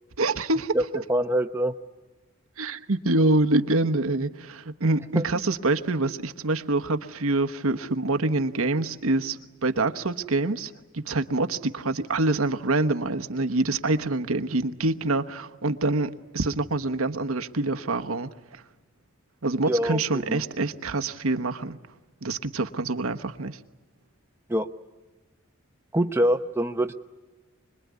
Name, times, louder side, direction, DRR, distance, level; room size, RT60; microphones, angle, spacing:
voice 1, 0.2-1.0 2.6-10.7 11.0-18.3 19.4-21.8 22.2-23.6, right 2 dB, 80° right, 7 dB, 1.1 m, -26 dB
voice 2, 1.1-1.7 5.1-5.2 19.7-20.4 24.5-24.7 25.9-26.9, equal, 10° right, 6 dB, 0.7 m, -24 dB
25.5 x 21.5 x 9.5 m, 1.2 s
head